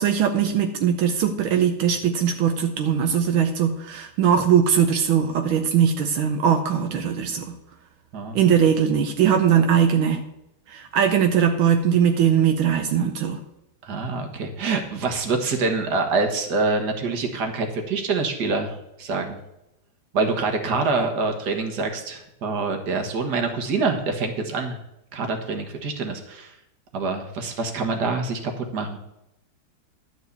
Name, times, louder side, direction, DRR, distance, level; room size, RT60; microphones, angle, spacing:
voice 1, 0.0-7.5 8.3-10.2 10.7-13.4, right 8 dB, 80° right, 5 dB, 1.6 m, -20 dB
voice 2, 13.8-19.4 20.1-24.8 25.1-26.5 26.9-29.0, right 3 dB, 55° right, 4 dB, 1.9 m, -26 dB
12.0 x 4.7 x 8.2 m, 0.85 s
omnidirectional pair, 2.2 m